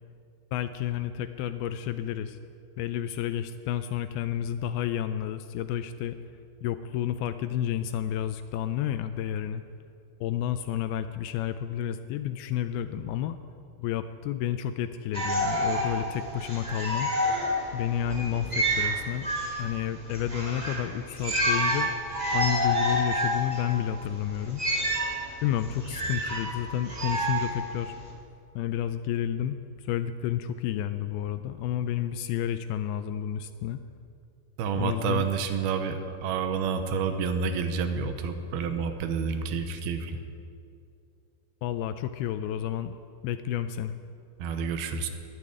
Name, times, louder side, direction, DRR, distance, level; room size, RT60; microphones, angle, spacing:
voice 1, 0.5-2.4 2.8-6.2 6.6-9.6 10.2-13.4 13.8-17.1 17.7-19.3 19.6-21.9 22.3-24.6 25.4-28.0 28.6-33.8 34.8-35.3 41.6-43.0 43.2-44.0, left 10 dB, 80° left, 10 dB, 2.3 m, -30 dB
sound 1, 15.1-28.1, equal, 15° right, 2.0 m, -29 dB
voice 2, 34.6-40.2 44.4-45.1, right 6 dB, 75° right, 7 dB, 2.7 m, -29 dB
12.0 x 11.0 x 9.8 m, 2.5 s
omnidirectional pair, 4.7 m